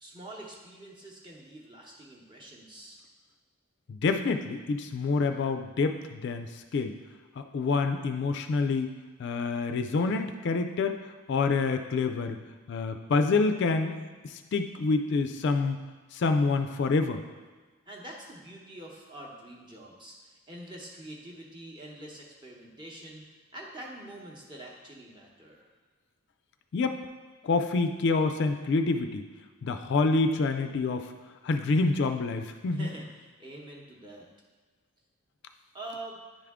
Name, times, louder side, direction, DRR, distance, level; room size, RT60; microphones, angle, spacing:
voice 1, 0.0-3.0 17.9-23.2 23.5-25.7 32.7-34.2 35.7-36.2, right 1 dB, 20° right, -2 dB, 0.9 m, -45 dB
voice 2, 3.9-6.9 7.4-8.9 9.2-11.0 11.3-12.4 12.7-14.0 14.2-15.8 16.1-17.2 26.7-27.0 27.4-29.3 29.6-31.1 31.4-32.9, left 3 dB, 50° left, 6 dB, 0.3 m, -27 dB
10.0 x 3.5 x 3.6 m, 1.3 s
head